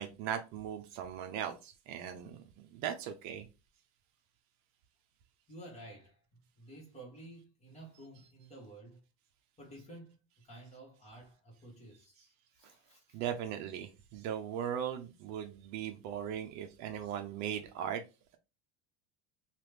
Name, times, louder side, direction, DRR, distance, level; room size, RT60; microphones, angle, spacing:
voice 1, 0.0-3.5 8.2-8.3 13.1-18.0, right 9 dB, 55° right, 0.6 m, -38 dB
voice 2, 5.5-9.0 9.6-13.2, right 1 dB, 20° left, 1.3 m, -52 dB
3.0 x 2.4 x 3.3 m
cardioid pair, 145°, 34 cm